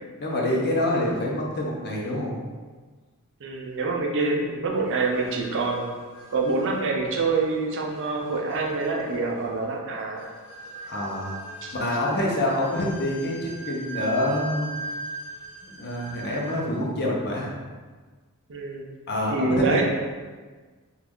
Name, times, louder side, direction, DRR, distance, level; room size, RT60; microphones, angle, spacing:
voice 1, 0.2-2.5 10.9-11.4 11.7-14.7 15.6-17.5 19.1-19.8, left 1 dB, 50° left, -2 dB, 0.6 m, -26 dB
voice 2, 3.4-5.9 6.3-10.3 11.6-11.7 18.5-18.9 19.3-19.8, right 3 dB, 55° right, 0 dB, 0.5 m, -26 dB
sound 1, 4.8-16.8, right 2 dB, 70° left, 1.1 m, -40 dB
3.1 x 2.4 x 3.5 m, 1.4 s
head